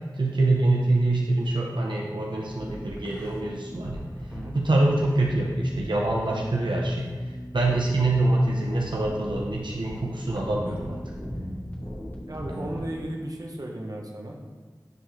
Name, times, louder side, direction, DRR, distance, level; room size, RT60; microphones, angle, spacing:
voice 1, 0.2-4.0 4.5-7.1 7.5-11.0 12.4-12.6, right 2 dB, 80° right, -2 dB, 0.8 m, -25 dB
sound 1, 2.4-13.0, equal, 20° left, 1.3 m, -39 dB
voice 2, 12.3-14.4, right 1 dB, 50° right, -1 dB, 0.9 m, -35 dB
9.3 x 3.8 x 3.1 m, 1.5 s
wide cardioid pair, 45°, 8 cm